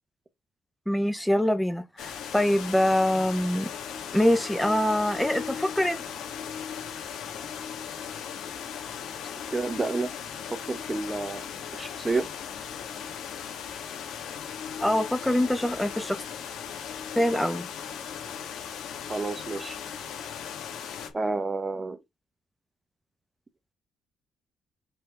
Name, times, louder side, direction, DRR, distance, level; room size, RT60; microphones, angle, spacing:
voice 1, 0.9-3.7 4.1-6.0 14.8-16.2 17.2-17.7, left 1 dB, 5° left, 0.9 m, -24 dB
sound 1, 2.0-21.1, left 8 dB, 90° left, 2.2 m, -38 dB
Harp, 3.8-21.4, left 6 dB, 60° left, 2.5 m, -46 dB
voice 2, 9.5-10.1 10.7-11.4 11.7-12.3 19.1-19.8 21.1-22.0, right 3 dB, 25° right, 1.1 m, -29 dB
6.6 x 3.7 x 3.8 m
cardioid pair, 90°, 0 cm